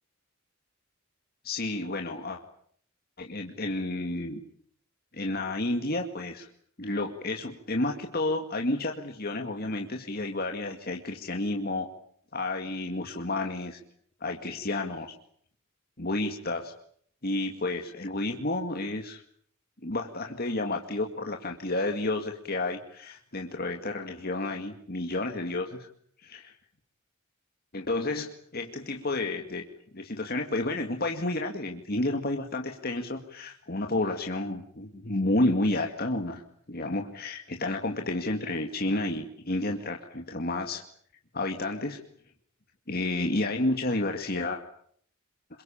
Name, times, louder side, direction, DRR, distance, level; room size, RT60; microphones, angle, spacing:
voice 1, 1.4-2.4 3.2-4.4 5.1-6.5 6.8-11.9 12.3-13.8 14.2-15.1 16.0-16.7 17.2-19.2 19.8-25.9 26.2-26.6 27.7-29.6 29.9-36.4 36.7-40.8 41.3-42.0 42.9-44.6, left 2 dB, 45° left, 3 dB, 2.1 m, -31 dB
28.0 x 23.0 x 8.7 m, 0.64 s
head